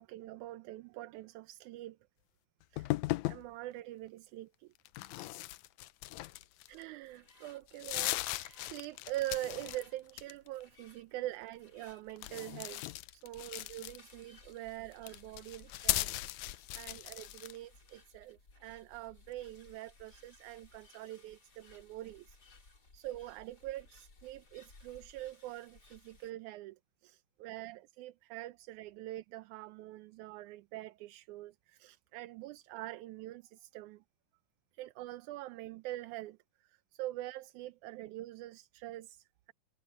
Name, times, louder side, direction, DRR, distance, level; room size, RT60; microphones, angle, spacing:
voice 1, 0.0-2.0 2.7-2.9 3.3-4.7 6.7-12.8 13.1-16.1 16.4-22.4 22.9-34.0 34.7-36.4 36.9-39.5, right 15 dB, 80° right, 2.1 m, -44 dB
sound 1, 2.8-3.5 4.9-6.8 7.3-7.4 7.7-9.8 10.1-10.6 12.2-14.2 14.9-17.6, left 17 dB, 80° left, 1.8 m, -37 dB
sound 2, 6.6-26.3, left 3 dB, 30° left, 3.8 m, -61 dB
omnidirectional pair, 3.6 m